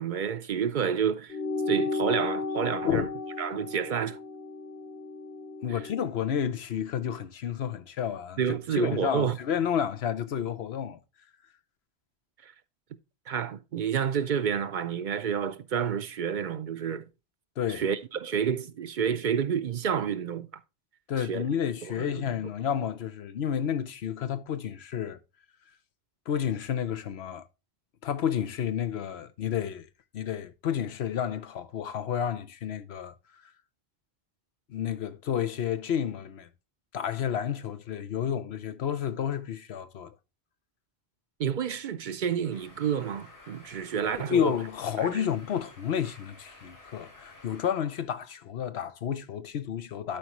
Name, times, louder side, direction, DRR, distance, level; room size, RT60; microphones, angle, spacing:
voice 1, 0.0-1.4 1.7-3.1 3.4-4.2 5.7-5.8 8.4-9.4 12.4-12.5 13.3-17.0 17.7-20.5 21.2-21.4 21.8-22.3 41.4-44.5 45.0-45.3, right 7 dB, 60° right, 0.6 m, -29 dB
sound 1, 1.3-6.1, left 3 dB, 15° left, 0.7 m, -34 dB
voice 2, 5.6-8.4 8.7-11.0 17.6-17.8 21.1-25.2 26.3-27.4 28.0-29.9 30.1-33.1 34.7-36.5 36.9-40.1 44.2-50.2, left 8 dB, 85° left, 1.0 m, -30 dB
sound 2, 42.5-47.7, left 2 dB, 60° left, 3.1 m, -53 dB
11.5 x 4.7 x 3.0 m
omnidirectional pair, 1.0 m